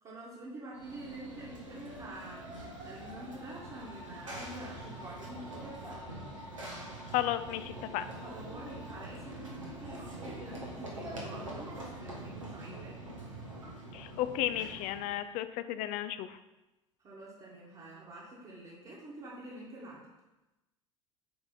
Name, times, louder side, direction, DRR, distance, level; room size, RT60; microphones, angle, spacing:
voice 1, 0.0-6.2 8.1-13.0 17.0-20.0, right 1 dB, 35° right, -8 dB, 1.6 m, -47 dB
Run / Train, 0.7-15.2, right 1 dB, 85° right, 1.2 m, -44 dB
voice 2, 7.1-8.1 13.9-16.4, left 13 dB, 50° left, 12 dB, 0.4 m, -33 dB
7.6 x 3.4 x 4.1 m, 1.0 s
figure-of-eight pair, 70°, 16 cm